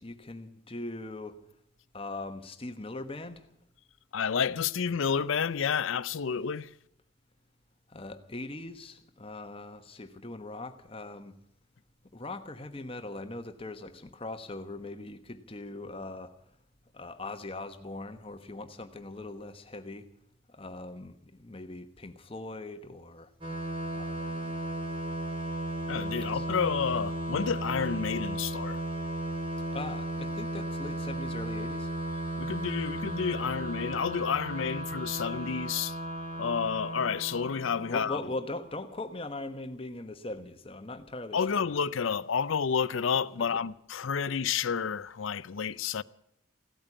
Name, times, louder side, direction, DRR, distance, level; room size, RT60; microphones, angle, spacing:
voice 1, 0.0-1.4 1.9-3.5 7.9-11.3 12.1-16.3 16.9-20.1 20.5-23.3 23.9-24.5 26.3-26.4 29.7-31.9 37.9-41.6, left 2 dB, 25° left, 1.1 m, -40 dB
voice 2, 4.1-6.7 25.9-28.8 32.4-36.0 36.4-38.2 41.3-46.0, left 6 dB, 80° left, 0.5 m, -30 dB
sound 1, 23.4-38.8, right 1 dB, 25° right, 3.7 m, -35 dB
16.5 x 8.9 x 9.8 m
head